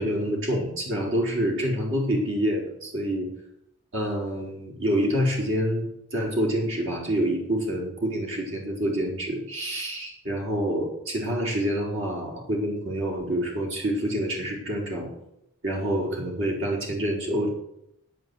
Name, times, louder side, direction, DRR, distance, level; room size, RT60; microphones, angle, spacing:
voice 1, 0.0-3.3 3.9-15.1 15.6-17.5, equal, 65° right, -1 dB, 4.7 m, -27 dB
9.5 x 8.3 x 8.1 m, 0.78 s
head